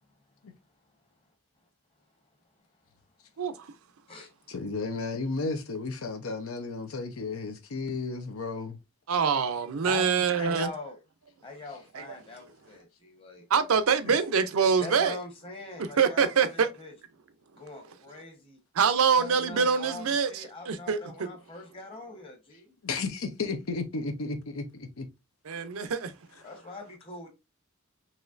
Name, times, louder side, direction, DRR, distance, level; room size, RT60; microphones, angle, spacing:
voice 1, 4.5-8.8 22.8-25.1, left 3 dB, 80° left, 0.7 m, -33 dB
voice 2, 9.1-10.7 11.9-12.0 13.5-15.2 16.0-16.7 18.8-21.3 25.5-26.1, right 6 dB, 85° right, 0.5 m, -25 dB
voice 3, 9.8-11.0 11.4-13.4 14.0-14.2 14.8-16.9 17.5-18.6 19.2-22.7 26.4-27.3, left 2 dB, 25° left, 1.1 m, -42 dB
4.1 x 3.0 x 2.5 m
head